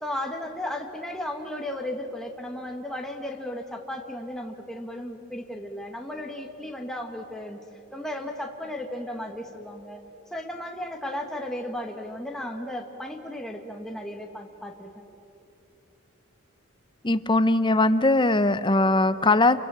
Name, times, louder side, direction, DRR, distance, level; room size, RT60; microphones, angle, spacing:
voice 1, 0.0-7.6 7.9-10.0 10.3-15.0, left 1 dB, ahead, 2 dB, 1.4 m, -35 dB
voice 2, 17.0-19.6, left 2 dB, 20° left, 13 dB, 0.7 m, -20 dB
29.5 x 23.5 x 7.5 m, 2.9 s
head